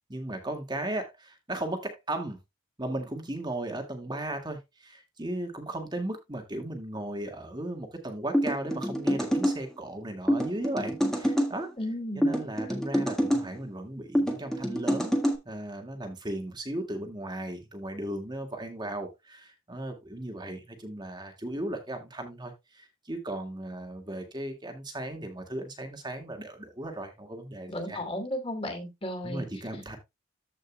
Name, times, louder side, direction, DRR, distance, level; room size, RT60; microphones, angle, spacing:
voice 1, 0.1-2.4 2.8-11.7 12.2-28.0 29.2-30.0, right 1 dB, 20° right, 1.9 m, -36 dB
sound 1, 8.3-9.6 10.3-11.5 12.2-13.4 14.1-15.4, equal, ahead, 1.7 m, -26 dB
voice 2, 11.8-12.3 27.7-29.5, left 1 dB, 25° left, 2.8 m, -34 dB
14.5 x 5.3 x 2.2 m
head